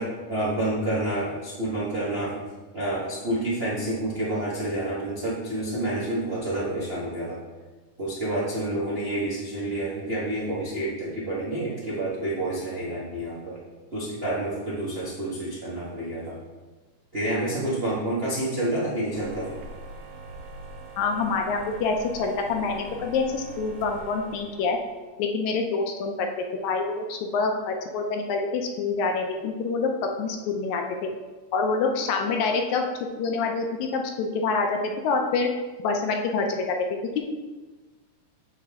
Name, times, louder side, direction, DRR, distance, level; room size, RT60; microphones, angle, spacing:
voice 1, 0.0-2.4 2.7-7.4 8.0-13.6 13.9-16.4 17.1-19.6, right 1 dB, 70° right, -8 dB, 0.5 m, -29 dB
sound 1, 19.1-25.1, right 2 dB, 90° right, 2.3 m, -42 dB
voice 2, 21.0-24.8 25.2-26.3 26.6-29.9 30.2-31.1 31.5-32.8 33.2-34.8 35.0-35.5 35.8-36.8, left 4 dB, 75° left, 3 dB, 1.8 m, -26 dB
7.5 x 5.8 x 3.6 m, 1.3 s
omnidirectional pair, 3.7 m